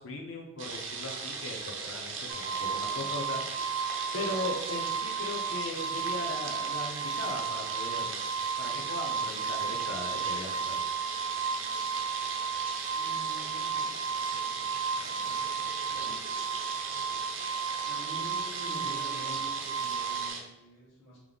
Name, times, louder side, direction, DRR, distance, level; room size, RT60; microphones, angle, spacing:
voice 1, 0.0-3.5 4.1-8.2 8.6-10.8, left 2 dB, 85° left, 1 dB, 0.6 m, -38 dB
sound 1, 0.6-20.4, right 4 dB, 75° right, 0.7 m, -38 dB
sound 2, 2.3-20.3, right 6 dB, 20° right, 0.4 m, -34 dB
voice 2, 12.9-16.2 17.9-21.2, equal, 70° left, -5 dB, 1.3 m, -48 dB
3.4 x 3.0 x 3.7 m, 0.94 s
head